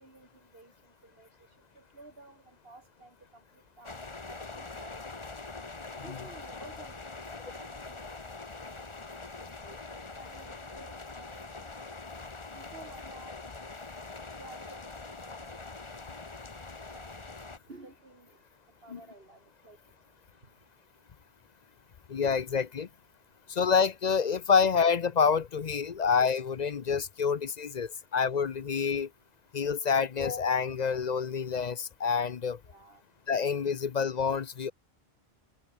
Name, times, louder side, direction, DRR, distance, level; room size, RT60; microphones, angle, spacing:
voice 1, 0.0-4.0 4.3-5.3 6.0-7.2 7.5-8.2 8.7-11.7 12.6-13.4 14.1-15.7 16.9-17.2 17.7-18.4 18.8-19.8 22.8-22.9 28.0-28.1 32.7-33.0, right 2 dB, 60° right, 3.5 m, -53 dB
sound 1, 3.8-17.6, left 3 dB, 25° left, 1.3 m, -43 dB
voice 2, 22.1-22.9 23.5-29.1 29.5-32.6 33.3-34.7, left 6 dB, 45° left, 0.7 m, -27 dB
omnidirectional pair, 1.1 m